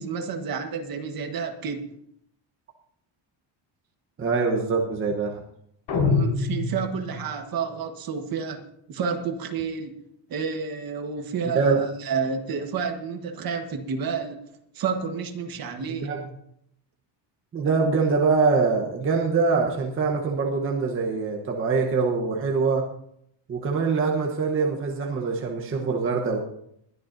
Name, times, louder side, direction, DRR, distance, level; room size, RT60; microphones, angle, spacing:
voice 1, 0.0-1.8 5.9-8.6 8.9-9.9 10.3-14.4 14.7-16.1, right 5 dB, 45° right, 5 dB, 1.5 m, -30 dB
voice 2, 4.2-5.4 11.4-11.8 16.0-16.2 17.5-22.9 23.5-26.4, right 4 dB, 25° right, 0 dB, 1.1 m, -24 dB
sound 1, 5.9-7.3, left 4 dB, 70° left, 4.6 m, -25 dB
21.0 x 11.5 x 2.7 m, 0.73 s
cardioid pair, 175°, 48 cm